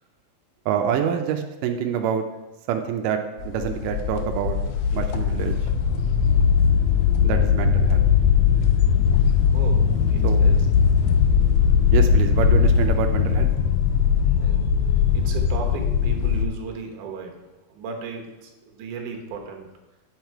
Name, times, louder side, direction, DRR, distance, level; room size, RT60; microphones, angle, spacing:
voice 1, 0.7-2.2 2.7-4.6 4.9-5.6 7.2-8.0 10.2-10.4 11.9-13.5, right 8 dB, 85° right, 4 dB, 1.9 m, -26 dB
sound 1, 3.4-16.5, left 7 dB, 85° left, 1.7 m, -19 dB
voice 2, 9.5-10.6 14.4-14.6 15.1-19.7, right 5 dB, 65° right, 2 dB, 2.4 m, -35 dB
9.0 x 6.4 x 4.6 m, 1.1 s
omnidirectional pair, 4.4 m